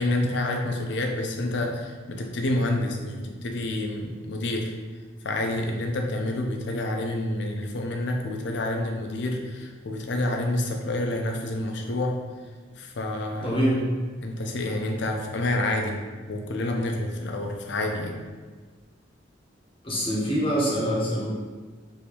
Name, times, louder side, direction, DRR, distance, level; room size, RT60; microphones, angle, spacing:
voice 1, 0.0-4.7 5.2-12.2 12.7-13.6 14.2-16.0 16.3-18.2, left 1 dB, 65° left, 2 dB, 0.5 m, -28 dB
voice 2, 13.4-13.9 19.8-21.3, equal, 30° left, -5 dB, 0.7 m, -24 dB
3.4 x 2.6 x 2.9 m, 1.4 s
head